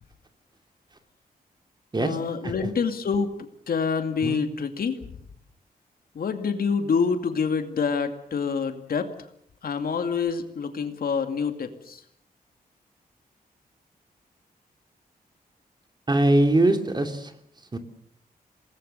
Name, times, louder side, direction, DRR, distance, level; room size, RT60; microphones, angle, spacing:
voice 1, 2.0-3.3 3.7-5.1 6.1-9.1 9.6-12.0, left 5 dB, 70° left, 7 dB, 2.4 m, -26 dB
voice 2, 16.1-17.3 17.7-17.8, right 1 dB, 25° right, 6 dB, 2.8 m, -22 dB
26.5 x 19.5 x 6.8 m, 0.70 s
cardioid pair, 90°, 16 cm